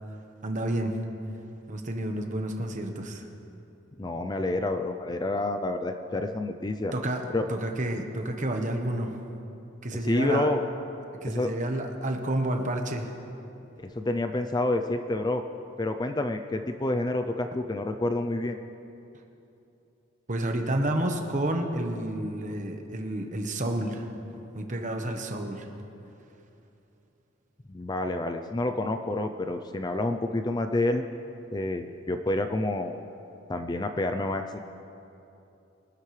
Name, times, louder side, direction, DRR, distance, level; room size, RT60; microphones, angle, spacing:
voice 1, 0.4-1.0 1.7-3.3 6.9-7.2 7.5-9.2 9.8-10.5 11.2-13.1 20.3-24.1 24.5-25.7, right 1 dB, 40° right, 4 dB, 1.2 m, -30 dB
voice 2, 4.0-6.9 7.3-7.4 10.0-10.6 11.3-11.5 14.0-15.4 15.8-18.6 27.7-31.0 31.5-33.0 33.5-34.6, left 2 dB, 20° left, 6 dB, 0.4 m, -28 dB
24.0 x 12.5 x 3.3 m, 2.8 s
head